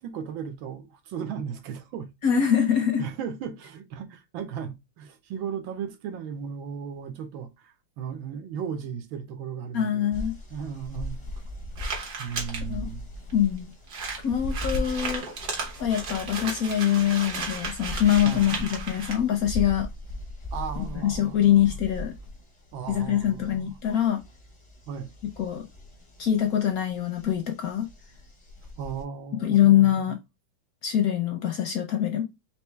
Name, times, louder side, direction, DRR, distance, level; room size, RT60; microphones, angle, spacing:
voice 1, 0.0-2.1 2.3-2.4 3.0-10.1 10.5-11.2 12.2-13.1 14.7-14.9 18.2-18.7 20.5-21.7 22.7-23.8 24.9-25.1 28.8-30.2, right 7 dB, 90° right, 1.6 m, -36 dB
voice 2, 2.2-3.0 9.7-10.4 12.7-12.9 13.3-13.7 14.2-15.2 15.8-19.9 21.0-22.1 22.9-24.2 25.4-25.6 26.2-27.9 29.4-30.2 30.8-32.2, left 10 dB, 65° left, 0.9 m, -23 dB
sound 1, 10.1-29.0, left 1 dB, 25° left, 0.6 m, -39 dB
sound 2, 11.7-12.6 13.3-13.4 13.6-13.7 13.9-19.2, right 4 dB, 60° right, 1.8 m, -35 dB
4.5 x 2.8 x 3.2 m
omnidirectional pair, 2.1 m